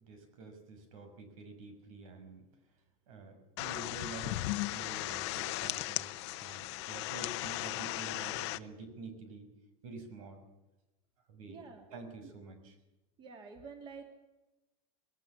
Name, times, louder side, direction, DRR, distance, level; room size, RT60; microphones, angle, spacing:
voice 1, 0.0-2.5 3.1-9.5 9.8-10.4 11.3-11.6 11.9-12.7, right 3 dB, 85° right, 8 dB, 6.1 m, -48 dB
sound 1, 3.6-8.6, left 20 dB, 55° left, 0.8 m, -37 dB
voice 2, 11.5-11.8 12.2-12.3 13.2-14.1, right 5 dB, 25° right, 5 dB, 2.7 m, -48 dB
21.0 x 18.5 x 7.3 m, 1.0 s
supercardioid pair, 170°, 17 cm